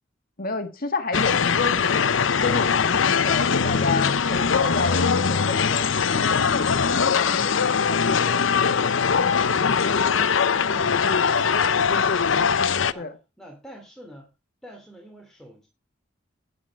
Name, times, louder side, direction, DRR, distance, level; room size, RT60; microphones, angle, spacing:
voice 1, 0.4-2.1 2.4-7.4 7.9-8.5 13.0-13.1, left 3 dB, 50° left, 1.8 m, -30 dB
sound 1, 1.1-12.9, left 6 dB, 85° left, 0.7 m, -21 dB
voice 2, 13.4-14.3 14.6-15.7, equal, ahead, 3.0 m, -45 dB
11.5 x 9.6 x 4.7 m
head